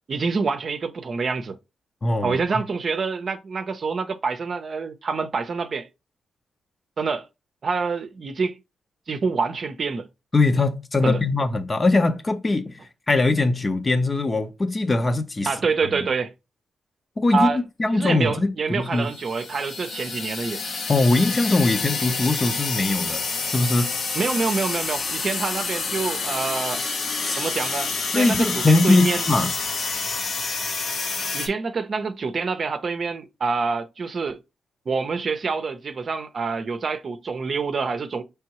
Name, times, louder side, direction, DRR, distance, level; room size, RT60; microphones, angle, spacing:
voice 1, 0.1-1.6 2.2-5.9 7.0-7.2 7.6-8.6 9.1-10.1 11.0-11.2 15.4-16.3 17.3-17.6 17.9-20.6 24.1-26.8 27.4-29.2 31.3-34.4 34.9-38.2, right 4 dB, 55° right, 0.6 m, -26 dB
voice 2, 2.0-2.6 10.3-12.8 13.1-15.5 15.9-16.1 17.2-19.1 20.9-23.2 23.5-23.9 27.2-27.4 28.1-29.5, left 2 dB, 35° left, 0.7 m, -21 dB
sound 1, 19.0-31.5, left 4 dB, 70° left, 0.9 m, -28 dB
4.5 x 3.4 x 2.9 m
supercardioid pair, 55°, 0 cm